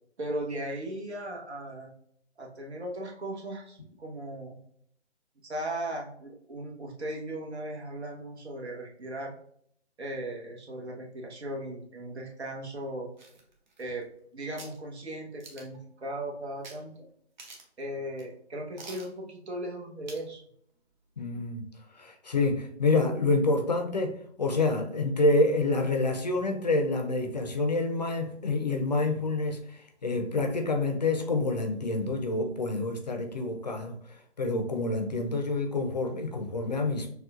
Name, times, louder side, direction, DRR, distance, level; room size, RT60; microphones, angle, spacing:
voice 1, 0.2-1.9 2.4-4.6 5.4-9.3 10.0-13.1 13.8-14.0 14.3-17.1 17.8-20.4, right 1 dB, 70° right, 0 dB, 1.2 m, -37 dB
sound 1, 13.2-14.2 14.6-14.8 15.4-15.8 16.6-16.8 17.1-17.2 17.4-17.8 18.2-18.3 18.8-19.1 20.1-20.3 20.7-20.8, right 3 dB, 40° right, 0.9 m, -47 dB
voice 2, 21.2-21.6 22.0-37.1, left 2 dB, 40° left, 4 dB, 0.5 m, -27 dB
6.3 x 2.3 x 2.4 m, 0.66 s
figure-of-eight pair, 150°, 35 cm